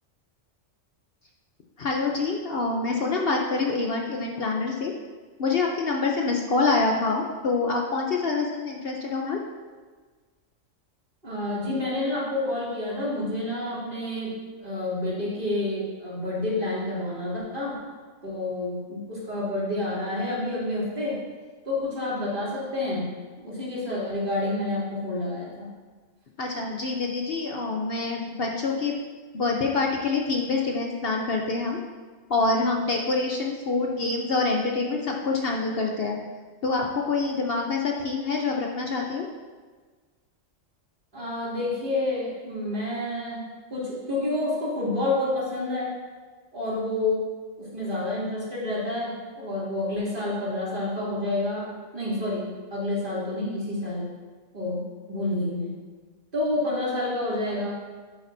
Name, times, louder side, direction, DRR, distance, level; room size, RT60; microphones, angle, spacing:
voice 1, 1.8-4.9 5.4-9.4 26.4-28.9 29.3-31.8 32.3-36.2 36.6-39.3, left 3 dB, 55° left, 0 dB, 0.9 m, -26 dB
voice 2, 11.2-14.4 14.6-17.8 18.2-21.2 21.6-23.2 23.4-25.7 41.1-43.4 43.7-45.9 46.5-47.2 47.6-54.0 54.5-55.7 56.3-57.7, left 2 dB, 40° right, -8 dB, 3.0 m, -29 dB
10.0 x 8.7 x 2.7 m, 1.4 s
omnidirectional pair, 1.3 m